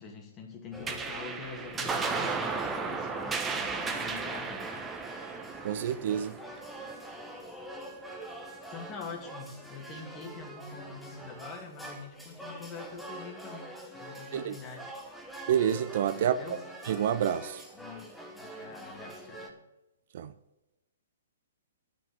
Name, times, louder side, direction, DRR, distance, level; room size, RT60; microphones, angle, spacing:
voice 1, 0.0-4.8 8.7-14.9 16.1-16.6 17.7-19.5, left 4 dB, 25° left, 2.6 m, -45 dB
sound 1, 0.7-19.5, right 1 dB, ahead, 1.4 m, -45 dB
sound 2, 0.9-7.6, right 4 dB, 15° right, 1.0 m, -35 dB
voice 2, 5.6-6.3 14.3-14.6 15.5-16.6 16.9-17.6 20.1-20.3, right 9 dB, 55° right, 0.5 m, -28 dB
10.0 x 5.8 x 8.6 m
figure-of-eight pair, 125°, 0 cm